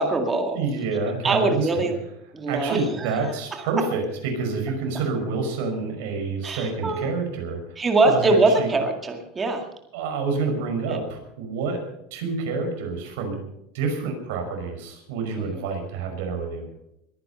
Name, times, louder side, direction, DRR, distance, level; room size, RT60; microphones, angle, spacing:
voice 1, 0.0-0.6 1.2-1.9 2.3-3.2 3.5-3.6 6.4-7.1 7.8-9.6 10.9-11.0 15.4-15.6, right 3 dB, 15° right, 4 dB, 2.0 m, -23 dB
voice 2, 0.5-1.9 2.5-8.7 9.9-11.8 12.1-13.4 13.7-16.7, right 4 dB, 70° right, 4 dB, 5.6 m, -28 dB
21.5 x 10.5 x 5.6 m, 0.82 s
supercardioid pair, 165°, 0 cm